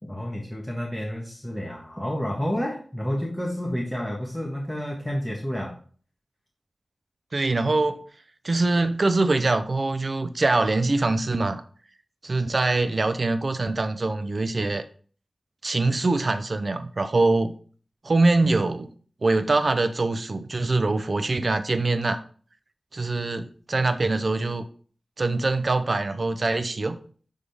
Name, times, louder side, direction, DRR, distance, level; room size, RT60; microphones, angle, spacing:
voice 1, 0.0-5.8, equal, 5° left, -2 dB, 1.4 m, -30 dB
voice 2, 7.3-8.0 8.4-11.6 12.2-14.8 15.6-17.5 18.0-18.9 19.2-22.2 22.9-24.7 25.2-27.0, right 2 dB, 55° right, 10 dB, 0.7 m, -23 dB
10.0 x 3.7 x 3.5 m, 0.43 s
wide cardioid pair, 65°, 0 cm